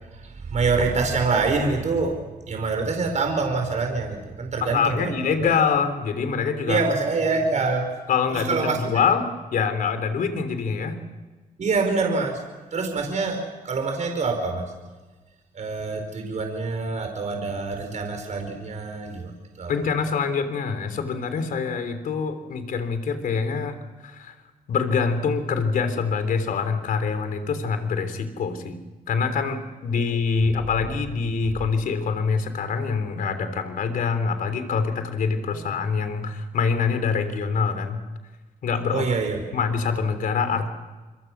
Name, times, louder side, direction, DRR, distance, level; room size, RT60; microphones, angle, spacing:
voice 1, 0.2-2.2 2.5-5.1 5.4-5.5 6.7-7.9 8.3-8.9 11.6-12.4 12.7-14.6 15.5-19.3 19.6-19.7 35.5-35.6 38.9-39.4, right 4 dB, 55° right, 4 dB, 4.9 m, -25 dB
voice 2, 4.6-6.8 8.1-9.3 9.5-11.0 19.7-23.8 24.0-24.4 24.7-28.8 29.1-38.0 38.6-39.2 39.5-40.7, left 5 dB, 75° left, 9 dB, 3.5 m, -25 dB
28.0 x 24.0 x 6.2 m, 1.3 s
cardioid pair, 80°, 15 cm